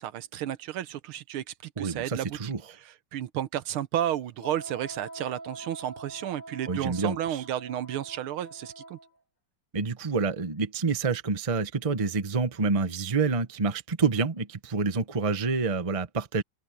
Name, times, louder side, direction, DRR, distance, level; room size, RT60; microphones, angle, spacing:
voice 1, 0.0-9.0, right 11 dB, 80° right, 1.6 m, -33 dB
voice 2, 1.8-2.6 6.7-7.4 9.7-16.4, right 4 dB, 25° right, 0.8 m, -28 dB
Wind instrument woodwind instrument, 4.4-9.1, right 2 dB, 90° left, 7.9 m, -44 dB
open air
omnidirectional pair, 2.4 m